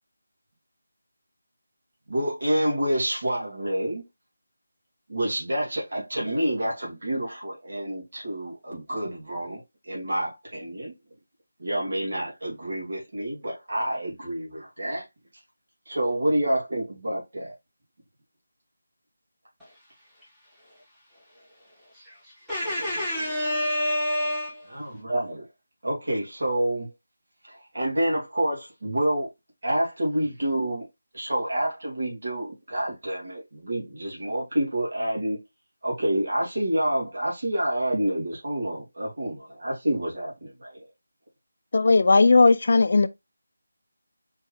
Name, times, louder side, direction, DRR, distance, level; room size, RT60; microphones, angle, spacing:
voice 1, 2.1-4.1 5.1-10.9 11.6-15.0 15.9-17.5 24.7-25.5 25.8-26.9 27.4-29.3 29.6-30.9 31.1-35.4 35.8-40.9, right 1 dB, 65° right, 2.4 m, -28 dB
voice 2, 21.9-24.7, equal, 5° right, 1.5 m, -28 dB
voice 3, 41.7-43.1, left 3 dB, 50° left, 0.4 m, -17 dB
4.4 x 3.4 x 3.4 m
figure-of-eight pair, 175°, 0 cm